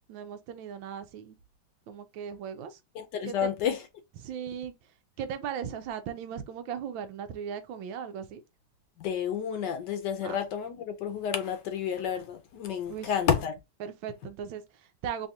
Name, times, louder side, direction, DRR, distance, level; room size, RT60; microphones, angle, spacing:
voice 1, 0.1-1.4 1.9-2.8 3.3-3.4 4.2-4.7 5.2-8.4 10.2-10.4 12.9-13.1 13.8-15.3, right 8 dB, 80° right, 1.3 m, -37 dB
voice 2, 2.9-3.9 9.0-13.6, left 8 dB, 70° left, 1.1 m, -30 dB
3.5 x 2.4 x 4.1 m
omnidirectional pair, 2.1 m